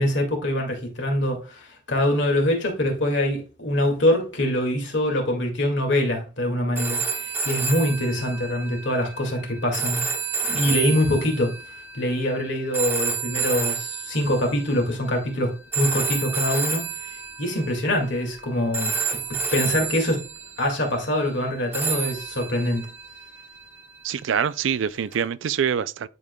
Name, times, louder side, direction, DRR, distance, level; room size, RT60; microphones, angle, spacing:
voice 1, 0.0-10.1 10.5-11.5 11.9-16.9 17.4-18.9 19.5-20.3 20.6-22.9, left 1 dB, 65° left, 2.1 m, -24 dB
sound 1, 6.8-15.0 15.7-18.4 18.7-20.9 21.7-24.0 25.1-25.2, right 4 dB, 10° right, 1.2 m, -30 dB
voice 2, 24.0-26.1, right 8 dB, 70° right, 0.4 m, -25 dB
11.0 x 5.0 x 2.3 m
head